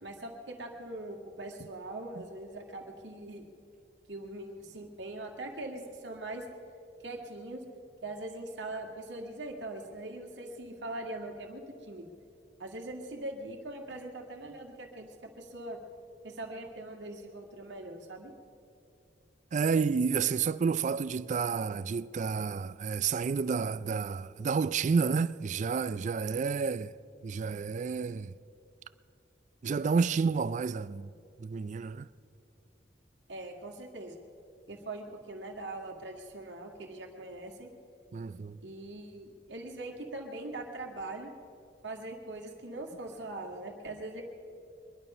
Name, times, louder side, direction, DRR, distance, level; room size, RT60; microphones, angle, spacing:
voice 1, 0.0-3.4 4.1-6.4 7.0-7.6 8.0-12.1 12.6-15.8 16.2-18.3 33.3-34.2 34.7-37.7 38.6-41.3 41.8-44.2, right 2 dB, 90° right, 1.9 m, -41 dB
voice 2, 19.5-26.9 27.2-28.3 29.6-31.1 31.4-32.1 38.1-38.6, right 5 dB, 45° right, 0.3 m, -30 dB
23.0 x 11.0 x 5.5 m
head